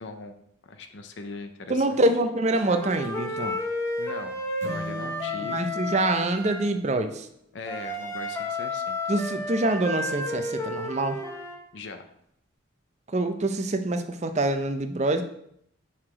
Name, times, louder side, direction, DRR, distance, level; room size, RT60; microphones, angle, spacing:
voice 1, 0.0-2.0 4.0-5.7 7.5-9.0 11.7-12.1, left 3 dB, 60° left, 7 dB, 0.5 m, -40 dB
voice 2, 1.7-3.6 5.4-7.3 9.1-11.2 13.1-15.2, right 2 dB, 35° right, 8 dB, 0.5 m, -25 dB
Wind instrument woodwind instrument, 2.5-6.6 7.7-11.6, left 1 dB, 15° left, 0.8 m, -32 dB
sound 1, 4.6-7.3, left 1 dB, 65° right, 0.7 m, -41 dB
5.7 x 4.8 x 4.8 m, 0.74 s
head